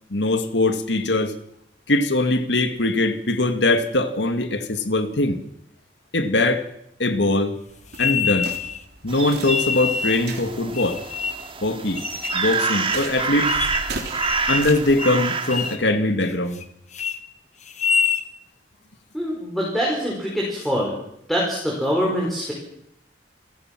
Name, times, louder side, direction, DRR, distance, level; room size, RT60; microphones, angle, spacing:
voice 1, 0.1-1.4 1.9-5.4 6.1-6.7 7.0-7.6 8.0-8.5 9.0-11.0 11.6-12.0 12.3-13.5 14.5-16.6, left 2 dB, 80° left, 2.1 m, -21 dB
sound 1, 7.7-15.0, right 3 dB, 65° right, 3.4 m, -38 dB
sound 2, 7.9-8.8 9.4-10.3 10.7-11.5 12.0-12.4 12.9-13.0 13.4-13.9 14.2-14.7 15.0-15.2 15.5-15.8 16.2-16.6 16.9-17.2 17.7-18.2, left 6 dB, 40° left, 1.3 m, -26 dB
sound 3, 9.1-15.7, right 4 dB, 30° right, 2.0 m, -28 dB
voice 2, 19.1-20.9 21.3-22.5, equal, ahead, 5.1 m, -24 dB
29.0 x 15.5 x 6.1 m
head